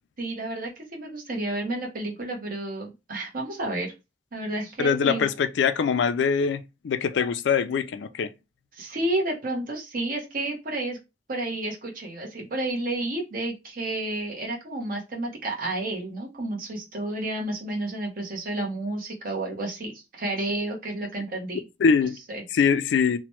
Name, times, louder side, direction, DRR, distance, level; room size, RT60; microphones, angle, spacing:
voice 1, 0.2-3.9 4.3-5.3 8.7-11.0 11.3-21.6 22.3-22.4, right 2 dB, 50° right, 0.9 m, -31 dB
voice 2, 4.8-8.3 21.8-22.1 22.5-23.2, left 6 dB, 75° left, 0.3 m, -23 dB
2.9 x 2.1 x 2.9 m
head